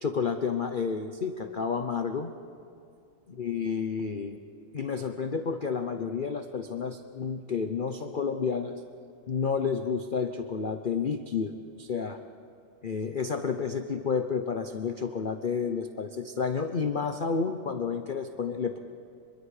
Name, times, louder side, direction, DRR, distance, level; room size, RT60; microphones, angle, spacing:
voice 1, 0.0-2.3 3.3-4.4 4.7-8.7 9.3-12.2 12.8-18.8, left 5 dB, 90° left, 7 dB, 0.4 m, -30 dB
24.5 x 22.5 x 4.9 m, 2.5 s
omnidirectional pair, 2.0 m